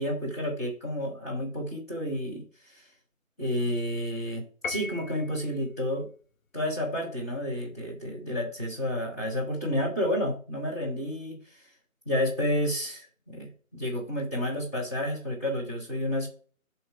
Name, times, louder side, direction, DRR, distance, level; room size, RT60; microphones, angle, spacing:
voice 1, 0.0-2.4 2.7-2.8 3.4-6.1 6.5-11.4 12.1-16.3, equal, 10° left, -7 dB, 0.9 m, -30 dB
Piano, 4.6-5.5, left 4 dB, 70° left, 0.8 m, -37 dB
7.7 x 2.8 x 5.7 m, 0.41 s
figure-of-eight pair, 155°, 43 cm